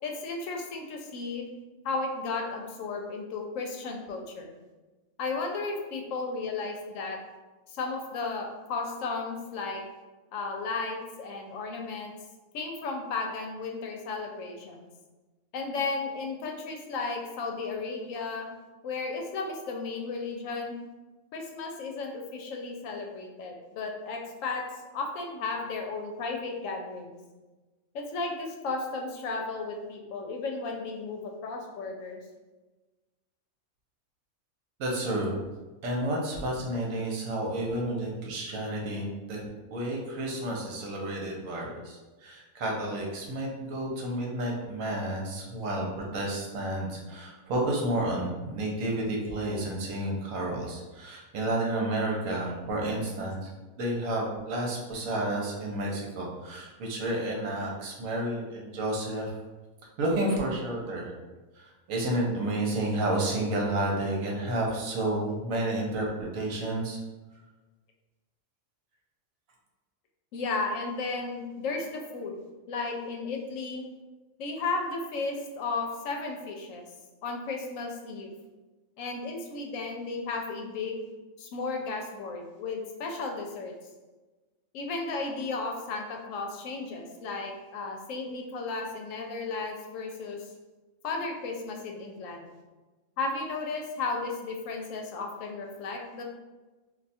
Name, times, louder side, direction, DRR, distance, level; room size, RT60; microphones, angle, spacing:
voice 1, 0.0-1.5 1.8-4.5 5.2-7.2 7.7-9.8 10.3-12.1 12.5-14.9 15.5-18.5 18.8-20.8 21.3-24.6 24.9-27.2 27.9-32.2 65.0-65.1 70.3-72.4 72.7-73.8 74.4-76.8 77.2-78.3 79.0-81.0 81.4-83.7 84.7-90.4 91.0-92.5 93.2-96.2, left 3 dB, 75° left, 2 dB, 0.9 m, -34 dB
voice 2, 34.8-35.4 35.8-39.4 39.7-45.9 46.1-53.5 53.8-59.3 60.0-61.1 61.6-67.0, right 1 dB, 75° right, -1 dB, 1.1 m, -31 dB
2.5 x 2.3 x 4.1 m, 1.2 s
omnidirectional pair, 1.4 m